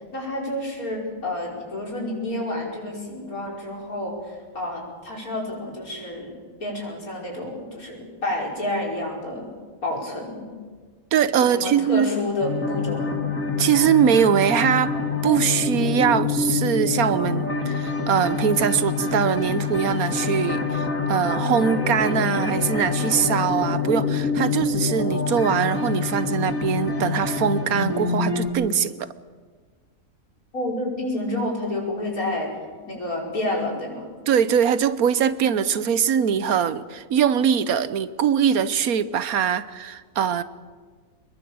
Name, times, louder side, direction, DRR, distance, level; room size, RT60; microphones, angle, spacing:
voice 1, 0.1-9.5 9.8-10.5 11.4-13.3 30.5-32.5 32.9-34.1, left 1 dB, 85° left, -2 dB, 5.7 m, -29 dB
voice 2, 11.1-12.1 13.6-15.0 15.2-29.1 34.3-40.4, right 8 dB, 90° right, 14 dB, 1.4 m, -22 dB
sound 1, 12.4-28.5, left 4 dB, 70° left, 2.7 m, -26 dB
25.5 x 21.5 x 7.1 m, 1.5 s
omnidirectional pair, 1.5 m